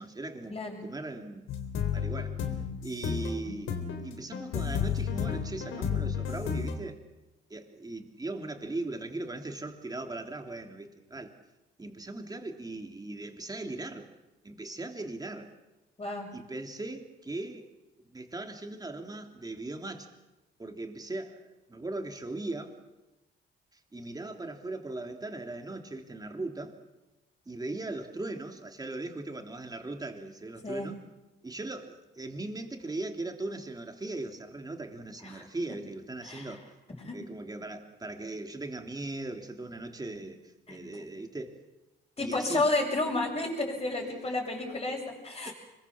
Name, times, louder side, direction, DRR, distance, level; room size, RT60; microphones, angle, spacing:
voice 1, 0.0-1.5 1.9-2.3 2.8-7.0 7.5-11.3 11.8-14.1 14.4-15.5 16.3-17.7 18.1-20.1 20.6-22.7 23.7-26.7 27.4-31.0 31.4-36.6 37.1-40.4 40.7-41.6 42.2-42.7, right 2 dB, 20° right, 4 dB, 3.2 m, -39 dB
sound 1, 1.5-6.8, left 7 dB, 85° left, 3.6 m, -32 dB
voice 2, 36.2-36.6 37.0-37.2 40.7-40.8 42.2-45.5, left 2 dB, 30° left, -6 dB, 6.8 m, -31 dB
25.5 x 22.0 x 7.3 m, 1.1 s
cardioid pair, 90°, 20 cm